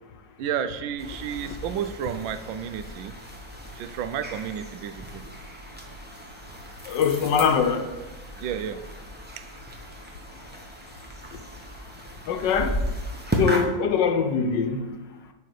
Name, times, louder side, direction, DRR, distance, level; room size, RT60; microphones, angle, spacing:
voice 1, 0.4-3.1 3.8-5.2 8.4-8.8 13.5-13.8, right 8 dB, 85° right, 10 dB, 1.4 m, -31 dB
sound 1, 1.0-13.7, equal, 10° right, 0.6 m, -35 dB
voice 2, 6.9-7.8 12.3-12.8 13.4-14.8, left 6 dB, 70° left, 6 dB, 1.3 m, -22 dB
9.8 x 3.7 x 6.5 m, 1.1 s
omnidirectional pair, 2.1 m